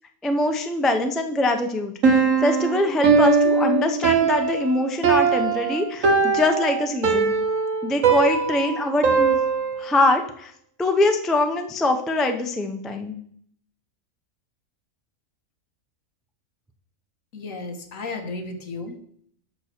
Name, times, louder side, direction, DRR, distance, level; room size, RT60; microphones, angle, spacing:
voice 1, 0.2-7.3 7.8-9.4 9.8-10.5 10.8-13.1, left 2 dB, ahead, 5 dB, 0.4 m, -23 dB
Piano, 2.0-9.9, right 5 dB, 65° right, 1.4 m, -20 dB
voice 2, 17.3-19.0, left 3 dB, 65° left, 5 dB, 1.6 m, -33 dB
7.7 x 6.2 x 4.4 m, 0.63 s
omnidirectional pair, 1.5 m